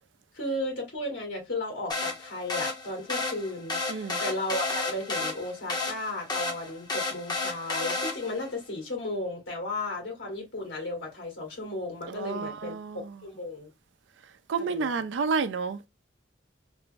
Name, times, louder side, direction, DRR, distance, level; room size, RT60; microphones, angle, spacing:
voice 1, 0.3-13.7 14.7-14.9, left 2 dB, 85° left, 1.9 m, -35 dB
sound 1, 1.9-8.5, left 3 dB, 25° left, 0.7 m, -32 dB
voice 2, 3.9-4.2 12.1-13.0 14.5-15.9, right 5 dB, 85° right, 0.4 m, -30 dB
3.3 x 2.0 x 3.3 m
head